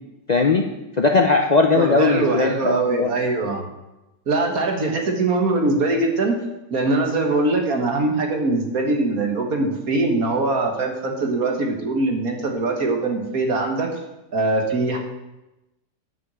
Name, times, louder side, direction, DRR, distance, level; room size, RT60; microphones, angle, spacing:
voice 1, 0.3-0.6 1.0-3.1, left 4 dB, 80° left, 3 dB, 0.3 m, -18 dB
voice 2, 1.8-3.6 4.3-6.4 6.7-13.9 14.3-15.0, right 2 dB, 55° right, 2 dB, 2.0 m, -22 dB
9.8 x 5.8 x 7.6 m, 0.97 s
omnidirectional pair, 1.9 m